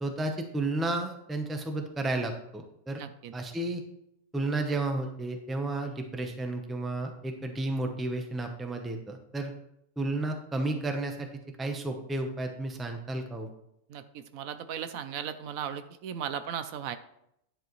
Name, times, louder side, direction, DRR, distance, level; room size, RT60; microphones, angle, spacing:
voice 1, 0.0-3.0 3.3-3.8 4.3-9.5 10.0-11.3 11.6-13.5, right 2 dB, ahead, 4 dB, 0.7 m, -32 dB
voice 2, 3.0-3.3 13.9-17.0, right 8 dB, 80° right, 11 dB, 1.0 m, -37 dB
10.0 x 7.5 x 3.1 m, 0.76 s
omnidirectional pair, 1.4 m